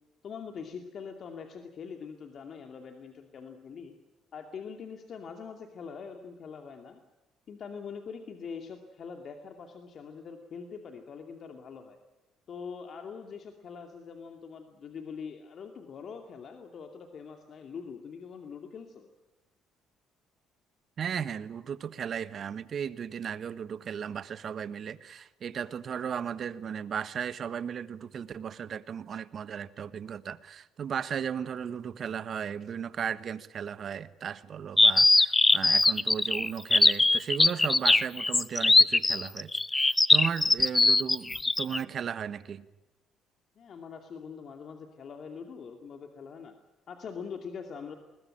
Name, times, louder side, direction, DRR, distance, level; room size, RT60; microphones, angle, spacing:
voice 1, 0.2-3.9 4.3-7.0 7.5-12.0 12.5-19.1 43.6-46.5 46.9-47.9, left 6 dB, 55° left, 5 dB, 2.4 m, -43 dB
voice 2, 21.0-42.7, right 8 dB, 55° right, 14 dB, 1.3 m, -36 dB
sound 1, 34.8-41.8, left 2 dB, 20° left, 0.8 m, -21 dB
21.0 x 20.0 x 8.9 m, 1.1 s
supercardioid pair, 70°, 0 cm